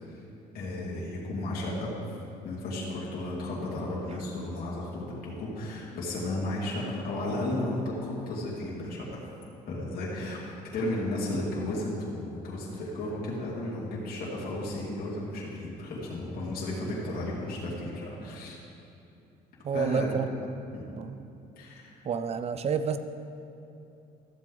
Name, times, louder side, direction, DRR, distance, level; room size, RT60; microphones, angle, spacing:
voice 1, 0.5-1.9 2.4-9.2 9.7-18.6 19.7-20.1 20.7-20.9 21.6-22.0, left 1 dB, 60° left, -6 dB, 2.4 m, -34 dB
voice 2, 19.6-20.3 21.0-21.2 22.0-23.0, right 7 dB, 40° right, 10 dB, 0.5 m, -29 dB
13.5 x 7.6 x 3.9 m, 2.8 s
cardioid pair, 110°, 17 cm